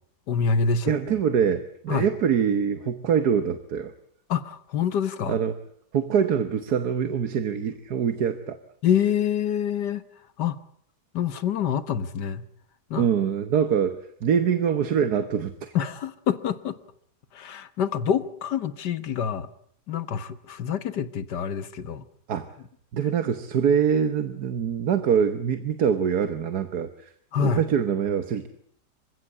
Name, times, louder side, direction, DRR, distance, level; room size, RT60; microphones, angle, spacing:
voice 1, 0.3-0.9 1.9-2.1 4.3-5.4 8.8-10.0 10.4-10.6 11.1-12.4 12.9-13.1 15.7-16.8 17.3-19.5 19.9-22.0 27.3-27.6, left 7 dB, 85° left, 13 dB, 1.8 m, -26 dB
voice 2, 0.9-3.9 5.3-5.5 5.9-8.6 13.0-15.7 22.3-22.5 22.9-27.1 27.4-28.5, right 7 dB, 70° right, 10 dB, 1.7 m, -24 dB
27.0 x 16.0 x 8.6 m, 0.66 s
omnidirectional pair, 1.8 m